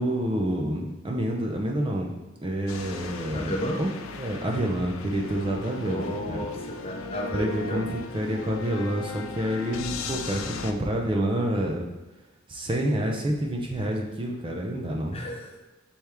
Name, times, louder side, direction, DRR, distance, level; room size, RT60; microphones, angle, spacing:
voice 1, 0.0-3.9 4.2-6.4 7.3-11.9 12.5-15.2, right 1 dB, 25° right, 0 dB, 0.4 m, -28 dB
sound 1, 2.7-10.7, left 4 dB, 80° left, 0.4 m, -37 dB
voice 2, 3.3-3.8 5.8-7.9 15.1-15.6, equal, 30° left, 1 dB, 0.6 m, -32 dB
4.4 x 3.3 x 3.5 m, 1.1 s
head